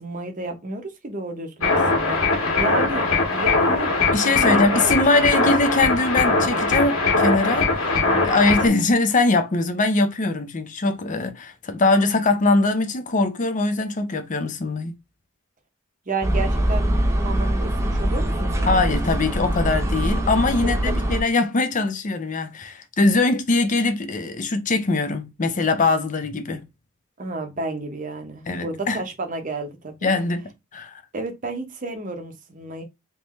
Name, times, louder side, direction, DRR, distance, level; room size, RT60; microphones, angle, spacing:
voice 1, 0.0-3.9 4.2-5.2 16.1-19.2 20.9-21.0 27.2-30.1 31.1-32.8, right 2 dB, 40° right, 0.8 m, -31 dB
sound 1, 1.6-8.7, left 3 dB, 80° left, 1.7 m, -21 dB
voice 2, 4.1-14.9 18.7-26.6 28.5-29.0 30.0-30.4 30.7-30.9, left 3 dB, 35° left, 0.6 m, -22 dB
sound 2, 16.2-21.2, right 1 dB, 15° right, 0.5 m, -23 dB
3.6 x 2.7 x 3.0 m
head